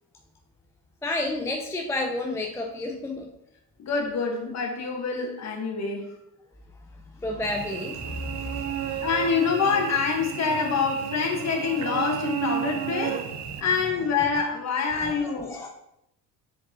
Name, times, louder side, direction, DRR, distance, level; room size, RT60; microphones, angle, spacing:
voice 1, 1.0-3.3 7.2-9.0 13.3-13.7 14.9-15.7, left 2 dB, 5° left, 1 dB, 0.4 m, -31 dB
voice 2, 3.8-6.1 9.0-13.2 13.6-15.7, left 5 dB, 35° left, 2 dB, 1.5 m, -26 dB
Cricket / Buzz, 7.4-13.6, right 9 dB, 40° right, 0.6 m, -32 dB
7.1 x 4.6 x 2.9 m, 0.81 s
figure-of-eight pair, 60°, 47 cm